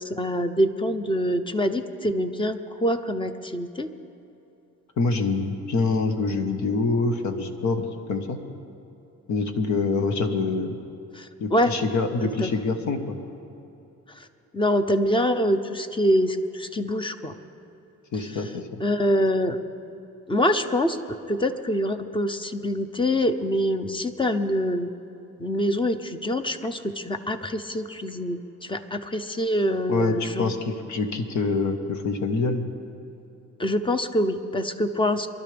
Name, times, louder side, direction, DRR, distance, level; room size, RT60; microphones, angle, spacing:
voice 1, 0.0-3.9 11.1-11.7 12.2-12.9 14.1-14.3 14.5-17.4 18.8-19.6 20.3-24.9 25.4-30.5 33.6-35.3, equal, 15° left, 9 dB, 0.7 m, -25 dB
voice 2, 5.0-8.4 9.3-10.7 11.4-13.2 18.1-18.8 29.9-32.6, left 3 dB, 70° left, 6 dB, 1.3 m, -25 dB
23.5 x 12.0 x 3.4 m, 2.9 s
cardioid pair, 90°, 30 cm